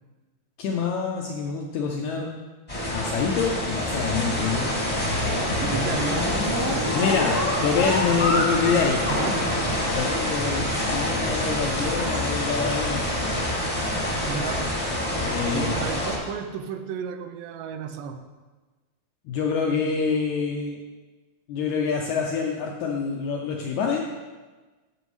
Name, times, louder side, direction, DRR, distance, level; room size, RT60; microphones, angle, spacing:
voice 1, 0.6-2.4 2.7-4.7 6.9-9.0 9.9-13.1 15.2-15.7 19.2-20.8 21.5-24.0, left 5 dB, 90° left, 0 dB, 1.6 m, -26 dB
sound 1, 2.7-16.2, left 1 dB, 30° left, 0.6 m, -27 dB
sound 2, 4.9-10.4, left 2 dB, 55° left, 1.0 m, -29 dB
voice 2, 5.6-6.3 9.1-10.0 14.2-14.7 15.5-18.2, right 7 dB, 80° right, 7 dB, 2.1 m, -33 dB
sound 3, 6.1-13.6, right 3 dB, 55° right, 1.3 m, -41 dB
14.5 x 6.1 x 3.2 m, 1.3 s
omnidirectional pair, 4.2 m